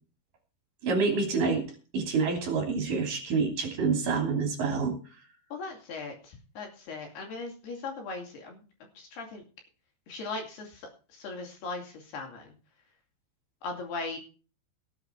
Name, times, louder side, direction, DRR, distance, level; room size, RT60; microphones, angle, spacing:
voice 1, 0.8-1.6 1.9-4.9, right 4 dB, 50° right, 2 dB, 4.3 m, -27 dB
voice 2, 5.5-8.6 8.9-9.4 10.1-12.5 13.6-14.2, left 3 dB, 60° left, 2 dB, 4.2 m, -39 dB
18.0 x 8.2 x 4.6 m, 0.37 s
omnidirectional pair, 5.6 m